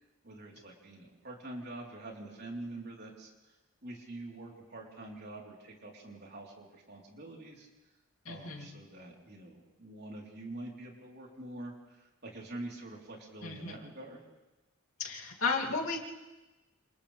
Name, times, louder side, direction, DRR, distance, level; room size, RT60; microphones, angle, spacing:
voice 1, 0.2-3.6 3.8-7.7 8.2-14.2, right 2 dB, 50° right, -2 dB, 4.0 m, -45 dB
voice 2, 8.3-8.7 13.4-13.8 15.0-16.2, left 4 dB, 85° left, -1 dB, 2.9 m, -34 dB
28.0 x 28.0 x 3.5 m, 1.1 s
head